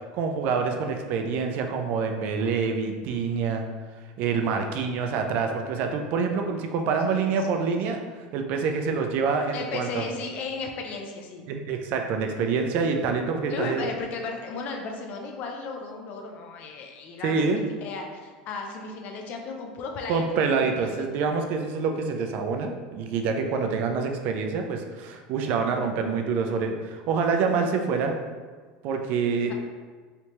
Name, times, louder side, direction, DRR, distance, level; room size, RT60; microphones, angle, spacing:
voice 1, 0.1-3.7 4.2-8.0 8.3-10.0 11.5-13.9 17.2-17.6 20.1-28.1 28.8-29.5, right 5 dB, 50° right, 4 dB, 0.4 m, -26 dB
voice 2, 7.1-8.0 9.5-11.5 13.5-21.0, left 4 dB, 45° left, 2 dB, 0.4 m, -35 dB
3.3 x 2.8 x 3.0 m, 1.5 s
supercardioid pair, 140°, 4 cm